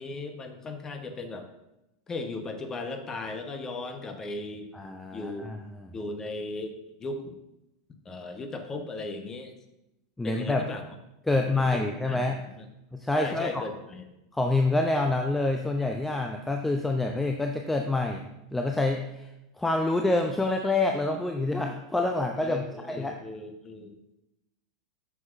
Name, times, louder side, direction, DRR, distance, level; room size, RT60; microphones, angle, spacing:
voice 1, 0.0-1.5 2.1-4.7 5.1-5.5 5.9-7.4 8.0-9.5 10.2-10.8 11.3-12.7 13.1-14.0 22.4-23.9, left 3 dB, 25° left, 5 dB, 1.0 m, -37 dB
voice 2, 4.7-5.9 10.2-10.7 11.3-12.4 12.9-13.7 14.3-18.2 18.5-19.3 19.6-23.2, left 2 dB, 5° left, 3 dB, 0.5 m, -27 dB
7.0 x 5.7 x 2.5 m, 0.91 s
figure-of-eight pair, 90°, 2 cm